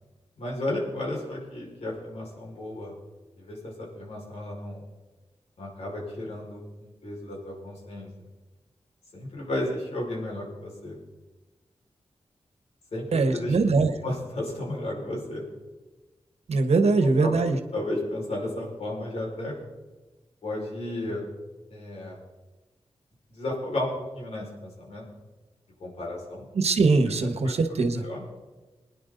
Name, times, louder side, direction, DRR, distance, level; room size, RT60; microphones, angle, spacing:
voice 1, 0.4-3.0 3.4-4.8 5.6-8.3 9.1-11.0 12.9-13.6 14.0-15.5 17.0-17.4 17.7-19.5 20.4-21.3 21.7-22.2 23.3-25.1 25.8-26.5 27.4-27.5 28.0-28.2, left 1 dB, 80° left, -3 dB, 5.3 m, -33 dB
voice 2, 13.1-13.9 16.5-17.6 26.5-28.0, right 3 dB, 80° right, 8 dB, 1.3 m, -22 dB
22.0 x 10.0 x 4.0 m, 1.2 s
wide cardioid pair, 110°, 11 cm